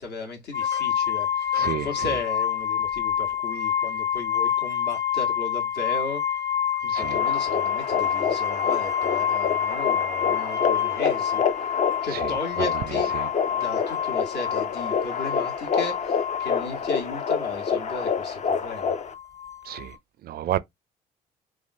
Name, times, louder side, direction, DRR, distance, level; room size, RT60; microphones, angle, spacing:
voice 1, 0.0-6.2 6.8-11.4 12.0-13.2 13.5-19.0, left 3 dB, 55° left, 1.3 m, -35 dB
sound 1, 0.5-19.9, left 9 dB, 15° left, 0.9 m, -28 dB
voice 2, 1.5-1.9 6.9-7.2 12.1-12.8 13.1-13.3 19.7-20.0 20.2-20.6, right 12 dB, 50° right, 0.4 m, -30 dB
sound 2, 7.0-19.1, left 6 dB, 35° left, 0.6 m, -28 dB
3.4 x 2.4 x 2.6 m
hypercardioid pair, 55°, 20 cm